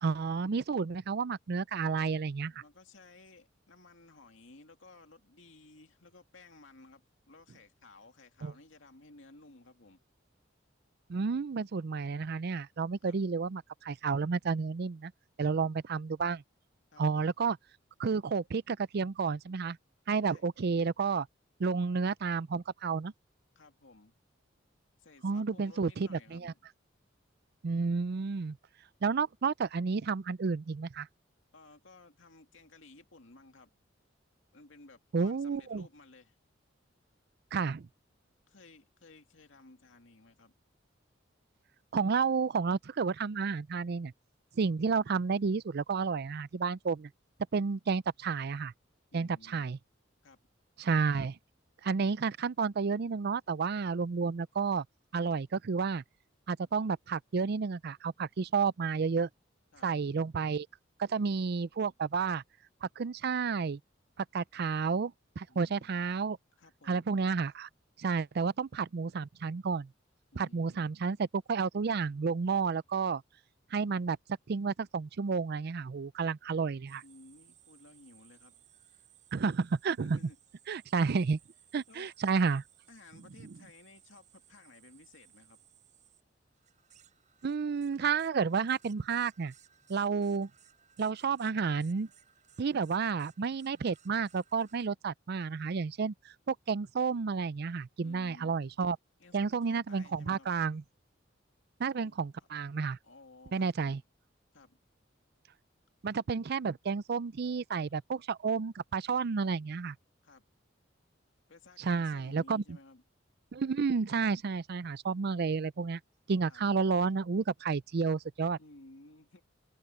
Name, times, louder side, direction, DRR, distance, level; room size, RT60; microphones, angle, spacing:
voice 1, 0.0-2.5 8.4-8.5 11.1-15.1 15.4-16.4 17.0-17.6 18.0-19.8 20.1-21.3 21.6-23.1 25.2-26.5 27.6-28.6 29.0-31.1 35.1-35.9 37.5-37.9 41.9-44.1 44.6-47.1 47.5-48.7 49.1-49.8 50.8-51.4 51.8-54.8 55.1-56.0 56.5-59.3 59.8-60.7 61.0-62.4 62.8-63.8 64.3-66.4 66.9-67.7 68.0-69.9 70.4-73.2 73.7-74.2 74.5-77.0 79.3-80.2 80.7-81.4 81.7-82.6 87.4-89.5 89.9-90.5 91.0-92.1 92.6-96.1 96.5-99.0 99.3-100.8 101.8-103.0 103.5-104.0 106.0-110.0 111.8-112.6 113.5-116.0 116.3-118.6, right 5 dB, 55° right, 0.5 m, -31 dB
voice 2, 2.5-10.0 13.0-13.2 15.6-15.7 16.9-17.3 20.2-20.4 23.6-24.2 25.0-26.6 31.5-33.7 34.5-36.4 38.5-40.5 49.1-49.7 50.2-50.4 59.7-59.9 65.5-66.1 66.6-67.1 70.3-70.9 76.2-76.4 77.0-78.6 78.8-79.1 80.0-80.4 81.9-82.1 82.9-85.6 98.0-98.5 99.2-100.5 101.9-102.5 103.0-104.0 104.5-104.8 110.2-110.5 111.5-113.0 116.5-116.6 118.6-119.4, left 2 dB, 80° left, 2.3 m, -57 dB
sound 1, 76.9-94.9, right 9 dB, 40° right, 7.7 m, -63 dB
open air
head